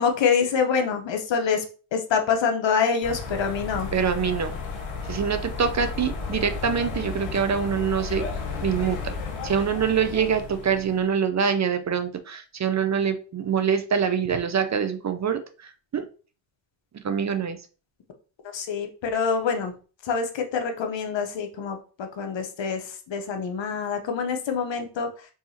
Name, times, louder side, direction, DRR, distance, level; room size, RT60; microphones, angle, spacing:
voice 1, 0.0-1.6 1.9-3.9 18.5-19.7 20.0-25.3, left 6 dB, 65° left, 5 dB, 0.9 m, -26 dB
sound 1, 3.0-11.1, left 4 dB, 90° left, 1.0 m, -33 dB
voice 2, 3.9-4.5 5.0-8.2 8.6-9.1 9.4-16.1 17.0-17.6, right 7 dB, 35° right, 9 dB, 0.5 m, -25 dB
4.7 x 2.8 x 2.7 m, 0.37 s
cardioid pair, 70°, 49 cm